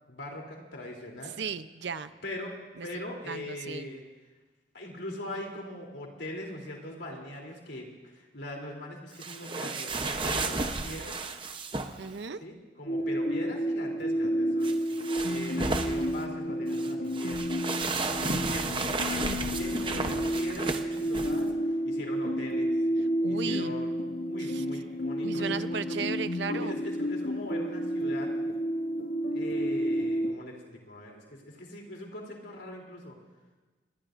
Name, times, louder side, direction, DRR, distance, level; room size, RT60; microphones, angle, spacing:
voice 1, 0.1-1.3 2.2-2.6 2.8-4.0 4.7-11.2 12.4-14.7 15.2-17.8 18.2-22.7 23.3-23.9 24.3-26.0 26.5-28.3 29.3-33.2, left 1 dB, 70° left, 0 dB, 3.3 m, -41 dB
voice 2, 1.3-2.1 2.8-2.9 3.3-3.9 12.0-12.4 19.8-20.2 23.2-23.7 24.4-24.6 25.2-26.8, right 5 dB, 75° right, 12 dB, 0.7 m, -36 dB
sound 1, 9.2-12.1 14.6-16.2 16.7-21.4, right 3 dB, 25° right, 0.8 m, -33 dB
sound 2, 12.9-30.3, equal, 55° left, 0.9 m, -30 dB
26.5 x 21.0 x 2.6 m, 1.3 s
head